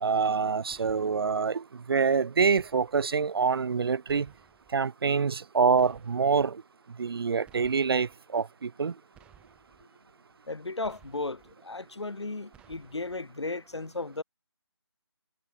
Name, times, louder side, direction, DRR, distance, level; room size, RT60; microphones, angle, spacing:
voice 1, 0.0-4.3 4.7-6.6 7.0-8.9, right 5 dB, 60° right, 0.4 m, -26 dB
sound 1, 0.7-1.4 2.4-3.1 4.1-4.8 5.8-6.5 7.4-8.1 9.1-9.8 10.8-11.5 12.5-13.2, right 10 dB, 5° right, 7.3 m, -59 dB
voice 2, 10.5-14.2, left 3 dB, 85° left, 2.5 m, -35 dB
figure-of-eight pair, 165°, 14 cm